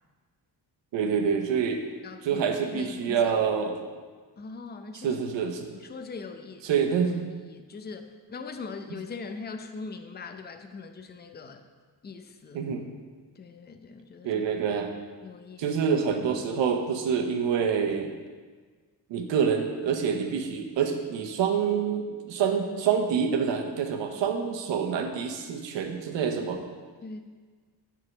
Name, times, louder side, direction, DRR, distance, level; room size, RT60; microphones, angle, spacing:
voice 1, 0.9-1.8 2.2-3.8 4.9-5.7 6.6-7.3 12.5-12.8 14.2-14.9 15.6-18.1 19.1-26.6, right 6 dB, 85° right, 4 dB, 1.0 m, -27 dB
voice 2, 2.0-3.4 4.4-5.2 5.7-6.7 7.3-11.6 12.0-12.6 13.4-14.4 15.2-15.7 27.0-27.2, left 4 dB, 25° left, 6 dB, 0.6 m, -41 dB
7.8 x 3.8 x 5.9 m, 1.5 s
cardioid pair, 85°, 43 cm